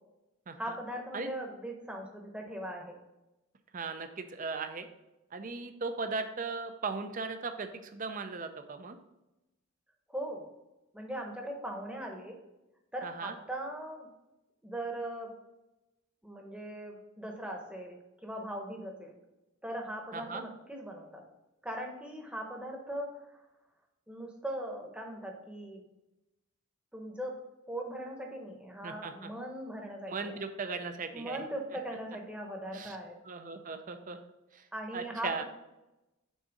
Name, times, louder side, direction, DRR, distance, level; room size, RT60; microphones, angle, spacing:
voice 1, 0.6-3.0 10.1-10.5 10.9-12.4 12.9-14.1 14.6-15.3 16.2-19.1 19.6-21.2 21.6-23.4 24.1-25.8 26.9-27.4 27.7-30.4 31.1-33.2 34.7-35.4, right 1 dB, 5° right, 1 dB, 0.9 m, -40 dB
voice 2, 3.7-4.9 5.3-9.0 13.0-13.3 20.1-20.4 28.8-29.3 30.1-31.4 32.7-33.0 33.3-34.2 34.5-34.6 34.9-35.4, right 4 dB, 35° right, 8 dB, 0.5 m, -37 dB
6.2 x 4.0 x 5.2 m, 0.98 s
head